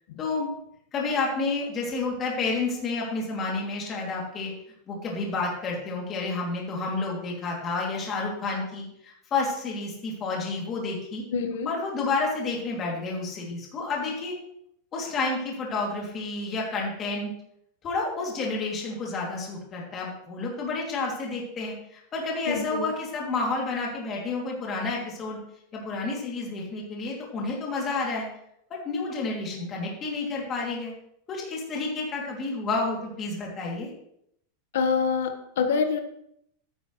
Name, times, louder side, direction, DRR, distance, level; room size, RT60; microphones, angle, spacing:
voice 1, 0.2-0.5 0.9-4.5 4.9-11.2 11.7-14.3 14.9-17.3 17.8-25.4 25.7-28.3 28.7-30.9 31.3-33.9, left 3 dB, 20° left, -2 dB, 2.7 m, -30 dB
voice 2, 11.3-11.7 22.5-22.8 34.7-36.0, left 5 dB, 75° left, 6 dB, 1.5 m, -26 dB
13.0 x 10.0 x 3.2 m, 0.74 s
supercardioid pair, 175°, 0 cm